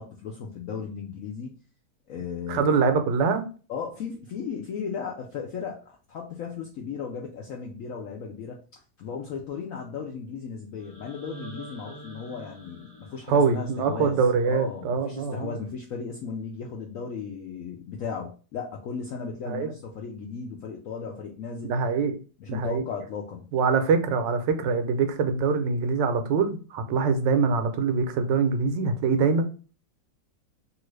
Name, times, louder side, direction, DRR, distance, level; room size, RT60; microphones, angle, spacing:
voice 1, 0.0-1.5 2.1-2.7 3.7-5.8 6.1-8.6 9.0-14.2 14.5-21.8 22.4-23.4, left 6 dB, 75° left, 0.7 m, -36 dB
voice 2, 2.5-3.4 13.3-15.5 19.5-19.7 21.6-22.2 22.5-22.8 23.5-29.4, right 5 dB, 80° right, 1.2 m, -24 dB
sound 1, 10.8-14.8, right 2 dB, 5° left, 0.7 m, -47 dB
2.9 x 2.5 x 3.1 m
omnidirectional pair, 1.9 m